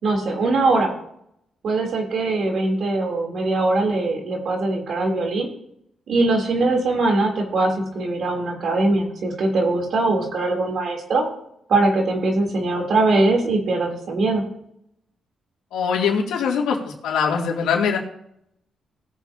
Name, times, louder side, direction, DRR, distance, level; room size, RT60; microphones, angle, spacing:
voice 1, 0.0-0.9 1.6-5.5 6.1-11.2 11.7-14.4, right 2 dB, 65° right, 1 dB, 3.3 m, -21 dB
voice 2, 15.7-18.0, left 6 dB, 85° left, -1 dB, 2.7 m, -22 dB
19.5 x 7.2 x 2.9 m, 0.74 s
cardioid pair, 80°, 0 cm